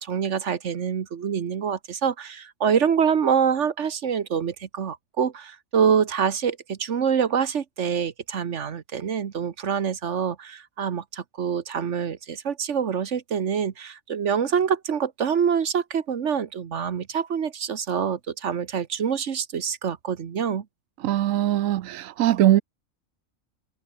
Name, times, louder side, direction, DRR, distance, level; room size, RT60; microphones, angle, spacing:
voice 1, 0.0-20.6, right 7 dB, 65° right, 1.4 m, -25 dB
voice 2, 21.0-22.6, right 13 dB, 85° right, 1.0 m, -21 dB
omnidirectional pair, 1.4 m